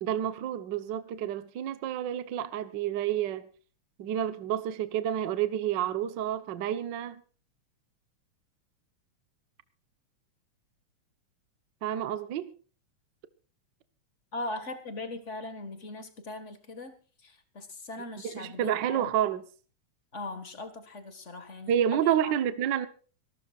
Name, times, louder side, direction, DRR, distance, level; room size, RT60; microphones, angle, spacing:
voice 1, 0.0-3.5 4.0-7.2 11.8-12.5 18.2-19.4 21.7-22.9, right 10 dB, 55° right, 1.2 m, -29 dB
voice 2, 14.3-17.0 17.2-19.1 20.1-22.4, left 2 dB, 30° left, 1.7 m, -40 dB
26.0 x 13.0 x 2.5 m
omnidirectional pair, 3.4 m